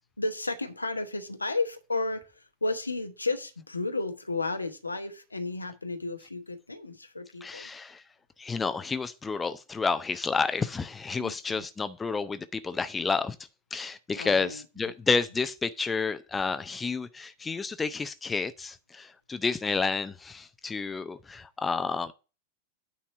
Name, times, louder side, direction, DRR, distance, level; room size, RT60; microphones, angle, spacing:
voice 1, 0.2-7.7 11.2-11.7 14.1-14.6, left 3 dB, 80° left, 1.0 m, -33 dB
voice 2, 7.4-8.0 8.4-13.4 13.7-22.1, left 4 dB, 15° left, 0.5 m, -30 dB
9.4 x 4.2 x 5.8 m
figure-of-eight pair, 90°, 0 cm